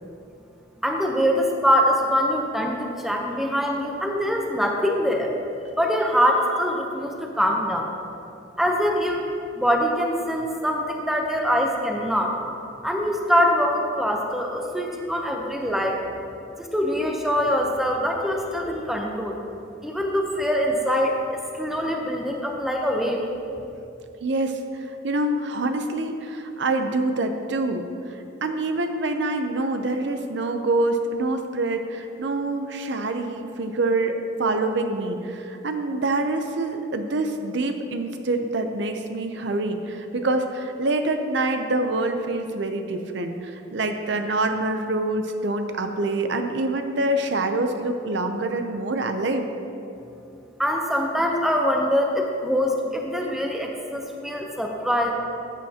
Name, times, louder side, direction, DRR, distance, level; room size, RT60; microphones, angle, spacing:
voice 1, 0.8-5.4 5.7-7.9 8.6-9.3 9.5-12.4 12.8-16.0 16.6-19.4 19.8-23.2 50.6-55.1, equal, ahead, 1 dB, 0.7 m, -23 dB
voice 2, 24.2-49.5, right 2 dB, 60° right, 6 dB, 0.6 m, -26 dB
13.0 x 8.9 x 2.8 m, 2.7 s
head